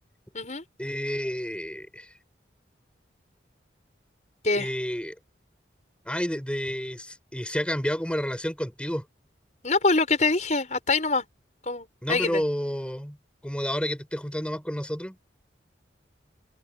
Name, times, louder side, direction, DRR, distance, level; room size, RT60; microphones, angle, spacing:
voice 1, 0.8-2.1 4.5-5.2 6.1-9.1 12.0-13.2 13.4-15.2, equal, 5° left, 6.0 m, -30 dB
voice 2, 9.6-11.2 11.6-12.4, left 3 dB, 40° left, 6.3 m, -24 dB
head